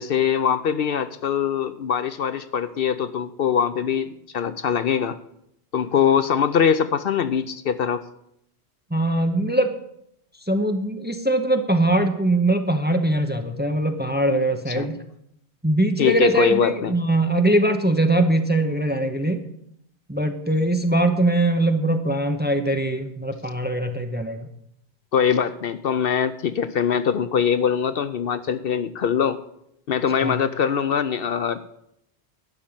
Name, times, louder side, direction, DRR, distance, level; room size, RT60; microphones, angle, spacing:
voice 1, 0.0-5.2 5.7-8.0 14.7-14.9 16.0-16.9 25.1-29.4 29.9-31.6, left 7 dB, 65° left, 12 dB, 0.8 m, -22 dB
voice 2, 8.9-9.7 10.5-15.0 15.6-19.4 20.1-24.5 30.2-30.4, right 1 dB, 10° right, 6 dB, 0.7 m, -22 dB
12.0 x 5.4 x 8.8 m, 0.77 s
omnidirectional pair, 1.1 m